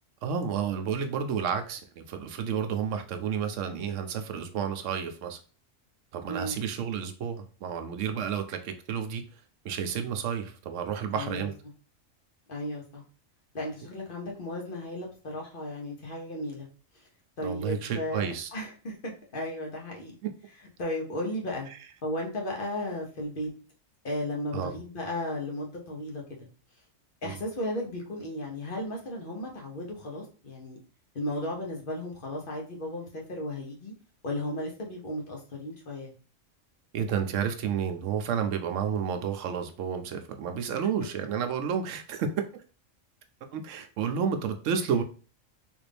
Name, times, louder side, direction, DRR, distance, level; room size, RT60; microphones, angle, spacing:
voice 1, 0.2-5.4 6.1-9.2 9.6-11.5 17.4-18.5 20.2-20.3 24.5-24.8 27.2-27.4 36.9-42.3 43.5-45.0, right 7 dB, 70° right, 7 dB, 0.9 m, -31 dB
voice 2, 6.3-6.6 11.1-11.5 12.5-13.0 13.5-16.7 17.4-20.1 20.8-21.7 22.0-23.5 24.0-26.5 27.2-30.8 31.1-33.9 34.2-36.1, left 1 dB, 45° left, -1 dB, 0.9 m, -35 dB
3.5 x 2.5 x 3.3 m, 0.38 s
omnidirectional pair, 1.4 m